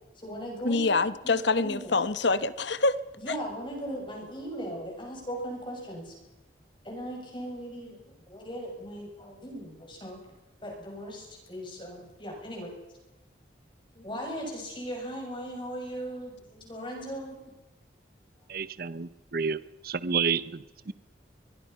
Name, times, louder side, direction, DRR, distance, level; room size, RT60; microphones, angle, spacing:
voice 1, 0.1-0.9 1.2-1.9 3.2-6.1 6.8-8.0 8.3-10.3 10.6-12.7 14.0-17.4, equal, 25° left, 0 dB, 7.1 m, -38 dB
voice 2, 0.6-3.0, left 3 dB, 70° left, 14 dB, 1.1 m, -25 dB
voice 3, 18.5-19.6 19.8-20.9, right 6 dB, 50° right, 16 dB, 0.7 m, -30 dB
24.5 x 22.5 x 5.7 m, 1.0 s
head